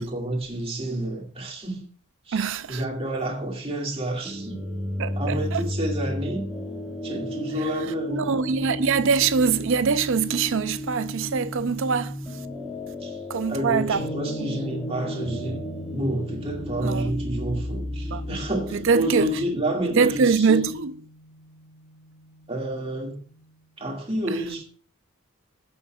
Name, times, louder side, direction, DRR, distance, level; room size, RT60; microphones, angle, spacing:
voice 1, 0.0-1.8 2.3-4.6 5.2-6.5 7.0-8.3 13.0-13.2 13.5-15.6 15.9-20.7 22.5-23.2 23.8-24.6, right 1 dB, 25° right, 2.2 m, -29 dB
voice 2, 2.3-2.8 5.0-5.6 8.1-12.5 13.3-14.1 14.4-14.6 16.8-17.1 18.1-18.3 18.7-19.4 19.8-20.9 24.3-24.4, right 5 dB, 60° right, 0.5 m, -24 dB
sound 1, 4.2-20.3, left 1 dB, ahead, 1.7 m, -33 dB
sound 2, 13.9-23.6, right 1 dB, 20° left, 2.9 m, -42 dB
21.0 x 7.0 x 2.3 m
head